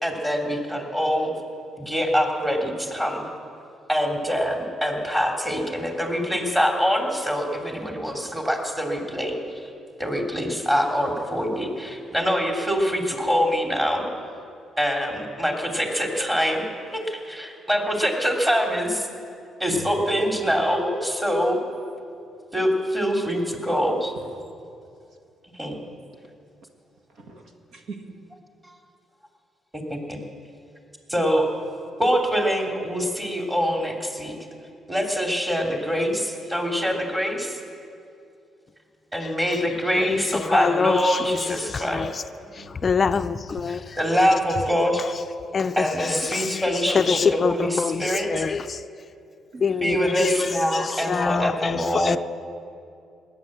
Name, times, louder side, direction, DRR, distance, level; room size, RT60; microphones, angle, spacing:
voice 1, 0.0-1.3 1.8-3.3 3.9-9.4 10.0-14.0 14.8-16.7 16.9-19.1 19.6-21.6 22.5-24.1 25.6-25.8 28.6-28.7 29.9-30.2 31.1-31.5 32.0-34.3 34.9-37.6 39.1-42.1 43.7-45.0 45.8-48.4 49.8-52.2, equal, 15° right, 2.9 m, -24 dB
voice 2, 27.2-28.0 42.5-42.9 49.5-49.6, right 2 dB, 70° right, 1.8 m, -40 dB
voice 3, 39.2-42.2 42.5-44.2 44.9-45.1 45.5-48.8 49.6-52.2, left 5 dB, 40° left, 0.4 m, -26 dB
19.0 x 9.7 x 7.8 m
cardioid pair, 90°, 0 cm